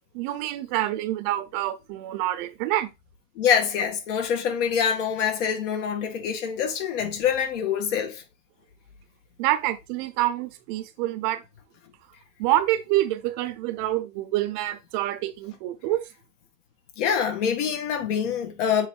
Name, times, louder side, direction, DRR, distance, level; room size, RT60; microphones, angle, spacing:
voice 1, 0.1-2.9 9.4-11.4 12.4-16.0, right 14 dB, 40° right, 0.7 m, -27 dB
voice 2, 3.4-8.2 17.0-18.9, left 7 dB, 70° left, 1.9 m, -25 dB
7.3 x 3.7 x 3.7 m
supercardioid pair, 170°, 38 cm